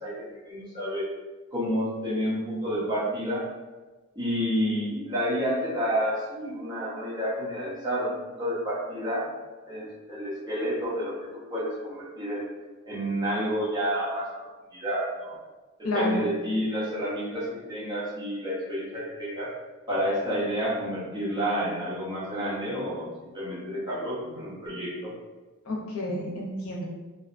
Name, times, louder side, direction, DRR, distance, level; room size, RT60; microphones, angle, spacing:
voice 1, 0.0-1.1 1.5-3.4 4.2-8.1 8.4-9.3 9.7-11.1 11.5-12.4 12.8-14.3 14.7-15.3 15.9-19.5 19.9-25.1, equal, 20° right, -8 dB, 0.7 m, -29 dB
voice 2, 15.8-16.2 25.7-26.8, left 1 dB, 75° left, -3 dB, 0.7 m, -30 dB
2.6 x 2.2 x 2.5 m, 1.2 s
head